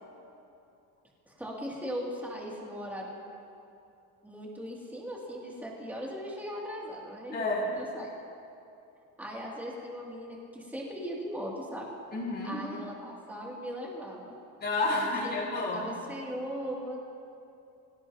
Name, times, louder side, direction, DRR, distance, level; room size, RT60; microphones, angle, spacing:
voice 1, 1.3-3.2 4.2-8.1 9.2-11.9 12.4-14.3 14.9-15.3 15.7-17.0, equal, 5° right, -4 dB, 2.7 m, -39 dB
voice 2, 7.3-7.6 12.1-12.6 14.6-15.8, left 2 dB, 30° left, -4 dB, 4.8 m, -30 dB
24.5 x 17.5 x 3.0 m, 2.7 s
cardioid pair, 150°, 35 cm